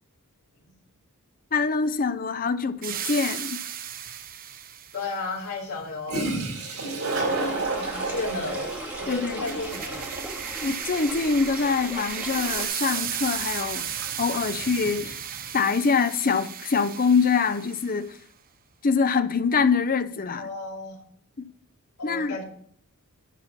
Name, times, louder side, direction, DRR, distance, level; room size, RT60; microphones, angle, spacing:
voice 1, 1.5-3.6 9.1-9.4 10.6-13.9 14.2-15.2 15.5-18.2 18.8-20.5 21.4-21.5 22.0-22.4, left 5 dB, 40° left, 0.6 m, -24 dB
sound 1, 2.8-5.2 9.1-18.0, right 9 dB, 40° right, 0.7 m, -35 dB
Toilet flush, 4.1-4.2 5.8-5.9 6.1-15.5, right 3 dB, 70° right, 3.9 m, -33 dB
voice 2, 4.9-6.3 7.2-8.7 9.0-10.1 20.4-21.0 22.0-22.4, left 3 dB, 75° left, 3.5 m, -33 dB
sound 2, 7.1-12.7, right 1 dB, 10° right, 2.4 m, -39 dB
11.0 x 4.3 x 7.2 m
head